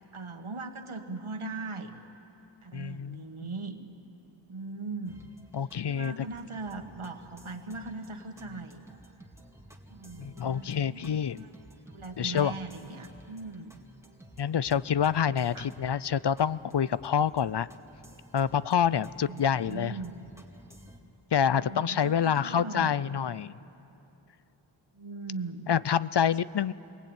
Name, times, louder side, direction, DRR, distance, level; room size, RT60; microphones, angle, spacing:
voice 1, 0.1-1.9 2.6-3.8 4.5-5.2 5.9-8.9 9.9-11.5 11.9-13.7 15.5-15.7 19.3-20.1 21.5-22.9 23.3-23.5 24.9-25.7, right 3 dB, 75° right, 6 dB, 1.8 m, -39 dB
voice 2, 2.7-3.5 5.5-6.3 10.2-11.4 12.2-12.6 14.4-17.7 18.3-20.0 21.3-23.5 25.7-26.7, left 8 dB, 55° left, 18 dB, 0.5 m, -27 dB
sound 1, 5.1-21.0, right 1 dB, 5° right, 2.3 m, -53 dB
28.0 x 22.5 x 8.9 m, 3.0 s
wide cardioid pair, 45°, 50 cm